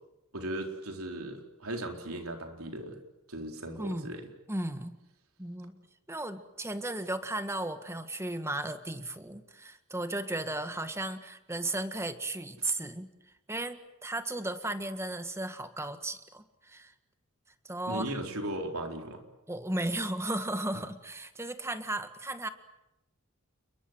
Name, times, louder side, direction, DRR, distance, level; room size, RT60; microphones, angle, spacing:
voice 1, 0.3-3.0 3.3-4.3 17.9-19.2, right 1 dB, 70° right, 4 dB, 4.1 m, -37 dB
voice 2, 3.8-4.2 4.5-5.0 5.4-5.8 6.1-13.1 13.5-16.9 17.6-18.0 19.5-22.5, right 1 dB, 10° right, 9 dB, 1.7 m, -35 dB
30.0 x 22.0 x 7.9 m, 0.89 s
head